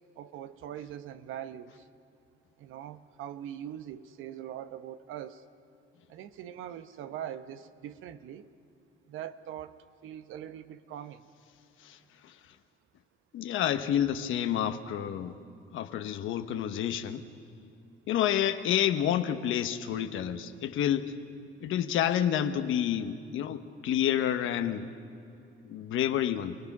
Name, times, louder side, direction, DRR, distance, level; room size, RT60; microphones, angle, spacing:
voice 1, 0.2-1.9 2.6-5.4 6.1-8.5 9.1-11.3, right 10 dB, 90° right, 12 dB, 0.9 m, -42 dB
voice 2, 11.8-12.3 13.3-15.4 15.7-17.2 18.1-21.1 21.6-24.9 25.6-26.6, left 10 dB, 85° left, 9 dB, 1.1 m, -29 dB
28.5 x 19.0 x 6.0 m, 2.6 s
cardioid pair, 90°, 20 cm